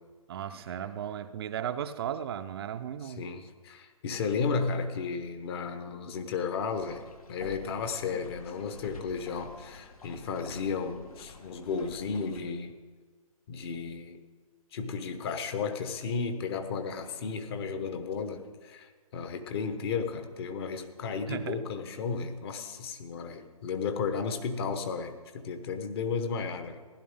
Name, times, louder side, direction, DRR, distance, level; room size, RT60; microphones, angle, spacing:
voice 1, 0.3-3.2 21.3-21.6, right 9 dB, 45° right, 9 dB, 0.5 m, -35 dB
voice 2, 3.0-12.7 13.5-14.2 14.7-26.8, left 5 dB, 45° left, 8 dB, 1.2 m, -34 dB
sound 1, 6.6-12.4, left 4 dB, 75° left, 1.6 m, -50 dB
16.0 x 11.0 x 3.6 m, 1.5 s
hypercardioid pair, 140°, 19 cm